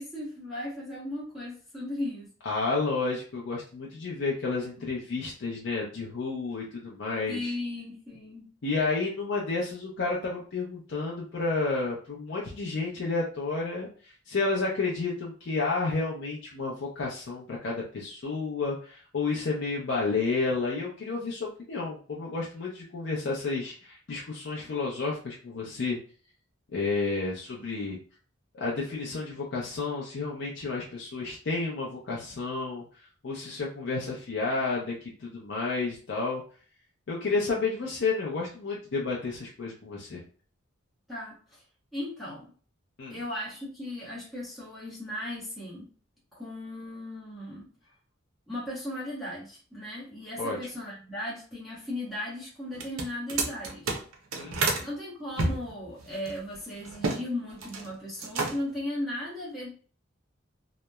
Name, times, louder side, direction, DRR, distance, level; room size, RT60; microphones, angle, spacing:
voice 1, 0.0-2.3 7.3-8.5 41.1-41.6 41.9-42.5 43.1-45.9 46.3-47.7 48.5-54.0 54.8-59.7, left 1 dB, ahead, -9 dB, 0.8 m, -36 dB
voice 2, 2.5-7.5 8.6-26.0 26.7-28.0 28.5-36.4 37.1-40.2 43.0-43.2 50.4-50.6 54.3-54.8, left 3 dB, 60° left, -3 dB, 0.5 m, -31 dB
sound 1, 52.7-54.9 55.4-57.2 57.5-57.9 58.2-58.8, right 3 dB, 90° right, 0.6 m, -30 dB
2.8 x 2.0 x 2.2 m, 0.41 s
head